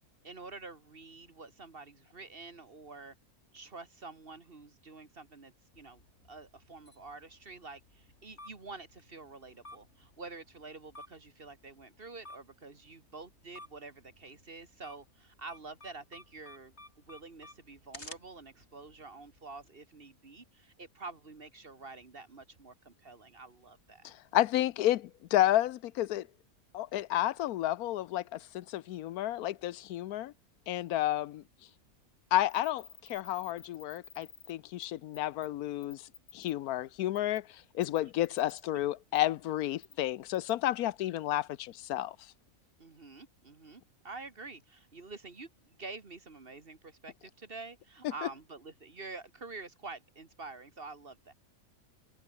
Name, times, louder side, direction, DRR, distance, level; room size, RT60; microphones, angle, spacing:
voice 1, 0.2-3.1 3.5-6.0 6.3-24.1 42.8-51.3, right 3 dB, 40° right, 2.1 m, -48 dB
sound 1, 5.7-19.7, left 2 dB, 50° left, 6.2 m, -55 dB
voice 2, 24.0-26.3 26.7-30.3 30.7-31.4 32.3-42.3 48.2-48.3, left 13 dB, 90° left, 1.2 m, -31 dB
sound 2, 32.5-34.5 34.8-34.9 35.1-35.5 35.8-36.5 37.2-37.4 37.8-38.6 39.1-39.2 39.8-39.9 40.3-40.5, left 6 dB, 70° left, 2.4 m, -52 dB
omnidirectional pair, 1.5 m